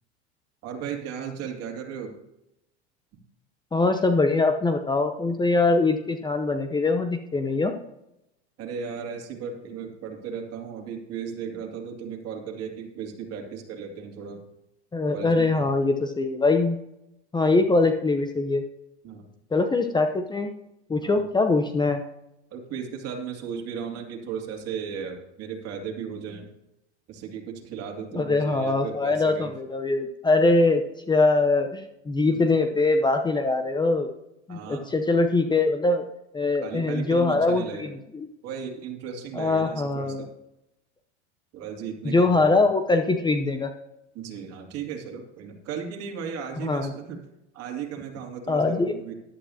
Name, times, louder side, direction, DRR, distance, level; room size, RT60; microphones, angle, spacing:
voice 1, 0.6-2.2 8.6-14.4 15.1-15.7 19.0-19.3 21.0-21.2 22.5-26.5 27.1-29.5 32.3-32.4 34.5-34.9 36.6-37.9 38.4-40.4 41.5-42.7 44.1-47.2 47.5-49.1, right 7 dB, 45° right, 2 dB, 2.7 m, -36 dB
voice 2, 3.7-7.7 14.9-16.8 17.3-18.6 19.5-20.5 20.9-22.0 28.1-34.1 34.5-36.0 36.3-37.9 39.4-40.3 42.0-43.7 46.6-46.9 48.5-48.9, left 3 dB, 15° left, 6 dB, 0.8 m, -22 dB
13.5 x 11.5 x 2.9 m, 0.86 s
hypercardioid pair, 100°, 34 cm